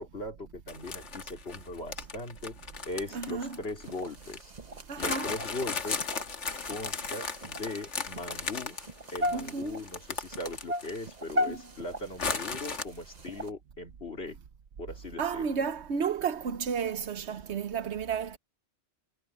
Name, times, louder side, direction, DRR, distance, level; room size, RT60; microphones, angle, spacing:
voice 1, 0.0-2.6 2.8-4.5 5.0-6.1 6.7-8.8 9.1-14.4 14.8-15.4, left 2 dB, 60° left, 3.3 m, -39 dB
sound 1, 0.7-4.4 5.0-11.1 11.4-11.5 12.2-12.8, left 5 dB, 90° left, 1.9 m, -36 dB
voice 2, 3.1-3.6 4.9-5.3 9.3-9.8 11.5-11.6 15.2-18.4, right 6 dB, 70° right, 1.2 m, -32 dB
sound 2, 3.8-13.5, left 1 dB, 40° right, 1.4 m, -38 dB
omnidirectional pair, 1.2 m